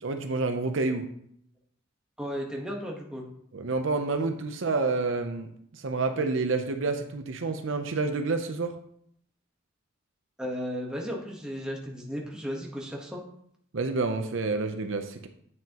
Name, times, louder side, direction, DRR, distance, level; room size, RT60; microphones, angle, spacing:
voice 1, 0.0-1.1 3.5-5.5 5.8-8.7 13.7-15.3, right 3 dB, 70° right, 6 dB, 0.6 m, -28 dB
voice 2, 2.2-3.3 10.4-13.2, equal, 5° right, -1 dB, 1.1 m, -34 dB
9.0 x 6.1 x 2.9 m, 0.69 s
head